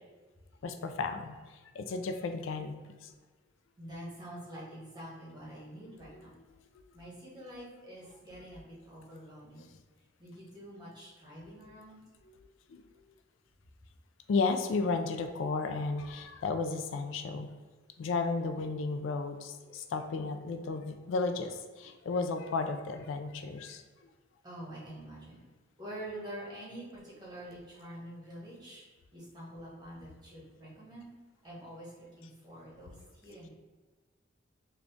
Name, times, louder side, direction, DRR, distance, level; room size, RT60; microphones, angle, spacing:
voice 1, 0.6-1.4 1.8-2.7 3.0-3.1 5.9-6.1 12.3-12.4 12.7-12.8 14.3-17.5 18.0-23.8, left 4 dB, 75° left, 7 dB, 0.3 m, -33 dB
voice 2, 3.8-6.3 6.9-9.6 10.2-12.0 24.4-25.4 25.8-28.8 29.1-31.1 31.4-32.9 33.2-33.5, right 1 dB, 20° right, -6 dB, 1.3 m, -46 dB
3.8 x 2.3 x 3.4 m, 1.3 s
head